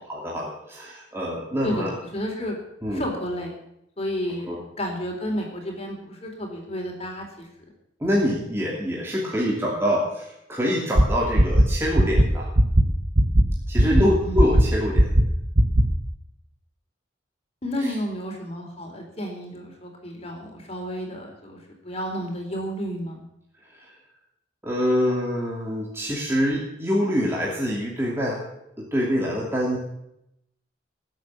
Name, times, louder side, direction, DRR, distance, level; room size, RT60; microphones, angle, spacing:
voice 1, 0.1-1.9 2.8-3.0 4.5-4.6 8.0-12.5 13.7-15.1 17.8-17.9 23.8-23.9 24.6-28.4 28.8-29.8, equal, 15° right, -3 dB, 2.6 m, -25 dB
voice 2, 2.1-2.6 2.9-3.5 4.0-7.5 13.8-14.4 17.6-23.2, equal, 35° left, 2 dB, 3.9 m, -31 dB
sound 1, 11.0-11.1 11.4-11.6 12.0-12.2 12.6-12.8 13.2-13.4 13.8-14.0 14.4-14.6 15.0-15.2 15.6-15.8, right 1 dB, 55° right, 1.5 m, -15 dB
19.5 x 7.8 x 8.5 m, 0.81 s
head